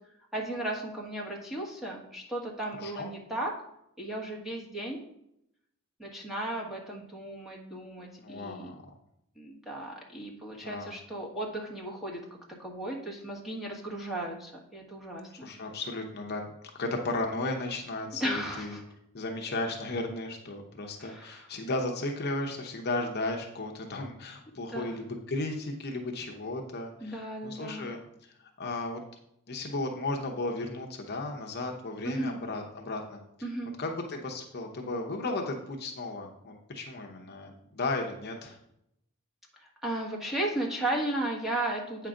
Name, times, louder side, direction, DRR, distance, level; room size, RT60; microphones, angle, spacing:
voice 1, 0.3-3.5 4.0-5.0 6.0-8.7 9.4-12.2 12.6-15.5 18.2-18.8 21.0-21.5 24.7-25.0 27.0-27.9 32.0-32.4 33.4-33.7 39.6-42.1, right 1 dB, ahead, -3 dB, 1.5 m, -35 dB
voice 2, 2.7-3.1 8.2-8.8 10.5-11.0 15.4-16.5 16.7-18.8 19.1-29.0 29.5-33.2 33.8-38.6, left 2 dB, 45° left, 2 dB, 0.8 m, -35 dB
8.7 x 5.6 x 3.8 m, 0.78 s
head